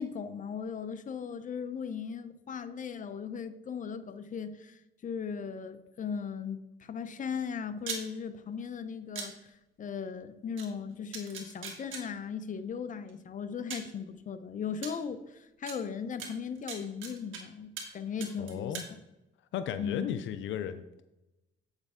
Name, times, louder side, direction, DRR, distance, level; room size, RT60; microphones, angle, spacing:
voice 1, 0.0-9.3 9.8-18.8 19.8-20.2, left 6 dB, 40° left, 0.7 m, -37 dB
sound 1, 7.8-8.0 9.1-9.3 10.6-10.7 11.1-12.0 13.1-13.2 13.7-13.9 14.8-14.9 15.7-15.8 16.2-17.4 17.8-17.9 18.2-18.9, right 5 dB, 75° right, 1.7 m, -39 dB
voice 2, 18.4-18.8 19.5-21.0, left 9 dB, 75° left, 0.5 m, -35 dB
8.1 x 6.5 x 3.6 m
cardioid pair, 90°, 20 cm